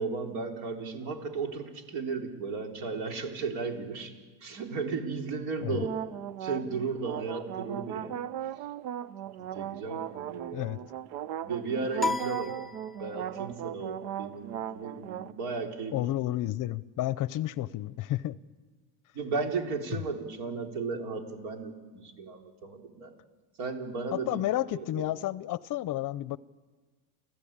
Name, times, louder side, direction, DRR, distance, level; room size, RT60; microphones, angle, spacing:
voice 1, 0.0-4.1 4.4-6.0 6.4-8.2 9.4-10.7 11.4-12.6 13.0-16.0 19.1-23.1 23.6-24.4 24.7-25.1, right 4 dB, 70° right, 3 dB, 3.8 m, -35 dB
sound 1, 5.7-15.3, right 10 dB, 90° right, 1.0 m, -38 dB
sound 2, 12.0-13.4, left 4 dB, ahead, 0.6 m, -34 dB
voice 2, 15.9-18.4 19.9-20.0 24.1-26.4, left 14 dB, 40° left, 19 dB, 0.6 m, -31 dB
29.5 x 14.5 x 8.8 m, 1.4 s
supercardioid pair, 120°, 48 cm